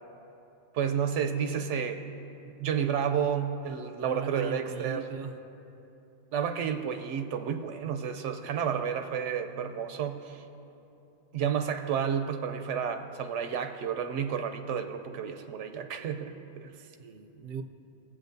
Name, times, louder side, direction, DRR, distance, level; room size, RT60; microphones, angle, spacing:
voice 1, 0.7-2.0 2.6-5.1 6.3-10.4 11.3-16.7, right 7 dB, 80° right, 7 dB, 0.9 m, -31 dB
voice 2, 4.0-5.4 16.7-17.6, right 5 dB, 55° right, 5 dB, 0.6 m, -38 dB
19.5 x 7.6 x 2.6 m, 2.8 s
omnidirectional pair, 1.2 m